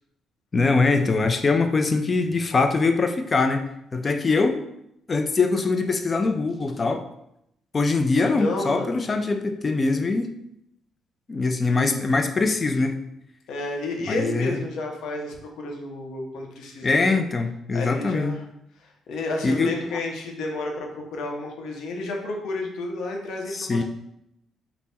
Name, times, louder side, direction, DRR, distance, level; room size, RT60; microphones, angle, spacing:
voice 1, 0.5-3.7 3.9-4.6 5.1-7.0 7.7-10.3 11.3-13.0 14.1-14.6 16.8-18.4 19.4-19.7 23.5-23.8, left 3 dB, 35° left, 7 dB, 0.4 m, -22 dB
voice 2, 8.1-9.0 13.5-17.1 17.7-18.4 18.8-23.8, left 2 dB, 80° left, 1 dB, 0.7 m, -31 dB
3.3 x 2.0 x 4.2 m, 0.77 s
cardioid pair, 90°, 0 cm